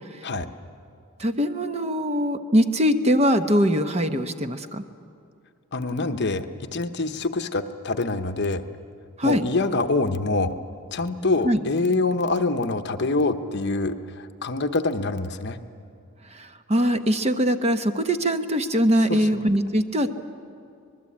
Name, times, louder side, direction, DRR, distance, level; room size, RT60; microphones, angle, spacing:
voice 1, 1.2-4.8 9.2-9.4 11.4-11.6 16.3-20.2, equal, 30° right, 8 dB, 1.0 m, -22 dB
voice 2, 5.7-6.5 6.7-8.6 9.2-10.5 10.9-15.6 19.1-19.4, left 3 dB, 55° left, 8 dB, 1.0 m, -25 dB
25.5 x 20.5 x 8.7 m, 2.4 s
head